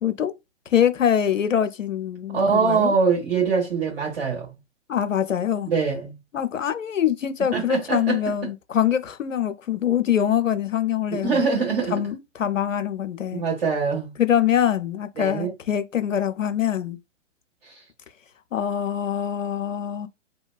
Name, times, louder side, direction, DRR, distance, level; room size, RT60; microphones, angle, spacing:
voice 1, 0.0-0.3 0.7-2.9 4.9-5.7 6.3-11.4 11.9-13.4 14.2-17.0 18.5-20.1, left 9 dB, 85° left, 0.5 m, -24 dB
voice 2, 2.3-4.5 5.7-6.1 7.5-8.2 11.2-11.9 13.3-14.1 15.2-15.5, right 5 dB, 50° right, 1.6 m, -23 dB
2.7 x 2.2 x 2.3 m
figure-of-eight pair, 125°, 37 cm